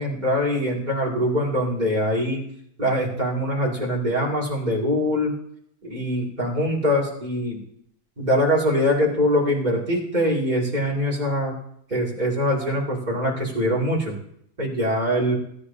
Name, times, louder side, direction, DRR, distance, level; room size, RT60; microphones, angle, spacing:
voice 1, 0.0-2.4 2.8-5.3 5.8-7.6 8.2-11.5 11.9-14.1 14.6-15.3, equal, 25° right, -4 dB, 2.5 m, -23 dB
17.0 x 9.7 x 2.7 m, 0.71 s
omnidirectional pair, 1.8 m